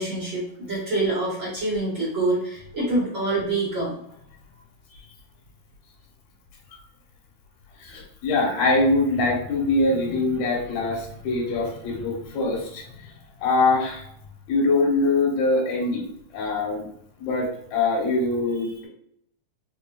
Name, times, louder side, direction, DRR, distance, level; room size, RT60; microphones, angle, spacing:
voice 1, 0.0-3.9 4.9-5.1, right 2 dB, 50° right, -8 dB, 1.7 m, -26 dB
voice 2, 7.8-12.8 13.4-14.0 14.5-16.9 17.2-18.9, left 2 dB, 80° left, -2 dB, 3.2 m, -23 dB
6.3 x 2.7 x 2.2 m, 0.72 s
omnidirectional pair, 4.2 m